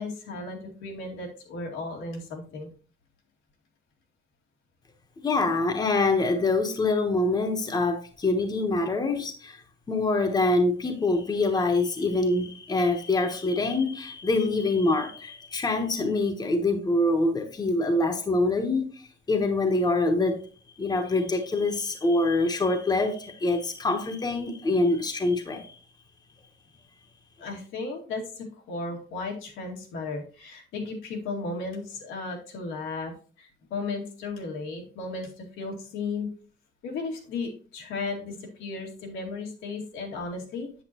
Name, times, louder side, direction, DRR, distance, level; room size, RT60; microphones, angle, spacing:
voice 1, 0.0-2.7 27.4-33.1 33.4-36.3 36.8-40.7, left 3 dB, 90° left, 2.2 m, -35 dB
voice 2, 5.2-9.6 9.9-18.9 19.3-20.4 20.8-25.8, left 2 dB, 20° left, 1.1 m, -25 dB
8.2 x 7.3 x 2.9 m
cardioid pair, 135°, 19 cm